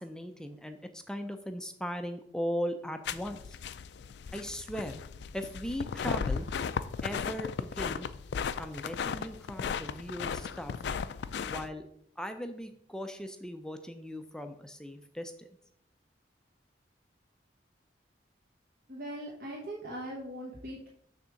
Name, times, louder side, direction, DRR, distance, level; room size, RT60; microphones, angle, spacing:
voice 1, 0.0-3.6 4.3-5.0 5.3-6.5 7.0-8.1 8.6-10.8 11.4-11.8 12.2-15.5, equal, 5° left, 7 dB, 0.4 m, -38 dB
sound 1, 3.1-11.7, left 6 dB, 70° left, 0.3 m, -36 dB
voice 2, 18.9-20.9, right 1 dB, 55° right, -3 dB, 1.1 m, -40 dB
6.6 x 3.5 x 6.2 m, 0.71 s
head